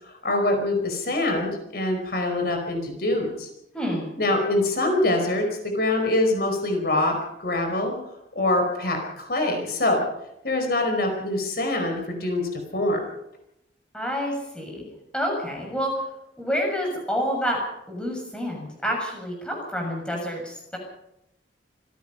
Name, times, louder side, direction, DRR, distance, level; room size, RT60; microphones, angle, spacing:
voice 1, 0.2-3.5 4.2-7.1 7.4-8.0 8.3-10.0 10.4-13.0, left 2 dB, 55° left, 4 dB, 4.7 m, -24 dB
voice 2, 3.7-4.1 13.9-14.8 15.1-16.0 16.4-17.6 17.9-20.8, equal, 5° left, 1 dB, 6.9 m, -28 dB
27.0 x 17.0 x 5.7 m, 0.84 s
head